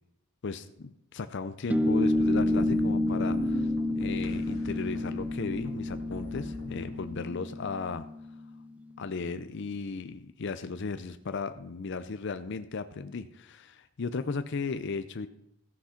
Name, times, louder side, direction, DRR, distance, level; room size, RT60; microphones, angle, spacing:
voice 1, 0.4-8.0 9.0-15.3, left 4 dB, 55° left, 11 dB, 0.5 m, -36 dB
sound 1, 1.7-8.7, left 1 dB, 5° right, 0.4 m, -29 dB
sound 2, 2.0-7.0, left 1 dB, 80° left, 1.9 m, -40 dB
14.0 x 6.2 x 5.8 m, 0.80 s
head